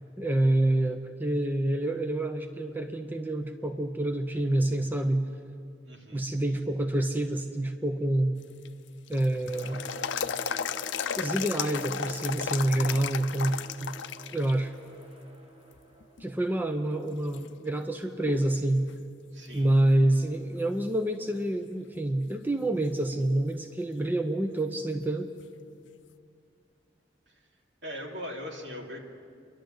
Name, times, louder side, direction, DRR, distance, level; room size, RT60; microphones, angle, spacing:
voice 1, 0.2-5.2 6.1-8.4 9.1-9.8 11.2-13.9 14.3-14.7 16.2-18.9 19.5-25.3, right 1 dB, 10° right, 5 dB, 0.7 m, -27 dB
voice 2, 5.8-6.3 19.3-19.7 27.3-27.5 27.8-29.0, equal, 70° right, -1 dB, 3.0 m, -40 dB
sound 1, 8.4-14.5 14.9-15.0 15.8-16.2 16.8-16.9 17.3-18.6 18.9-19.0 22.3-22.4 25.4-25.5, left 7 dB, 85° left, 0.6 m, -34 dB
sound 2, 9.5-17.1, right 3 dB, 30° right, 1.7 m, -48 dB
29.5 x 12.0 x 7.8 m, 2.4 s
head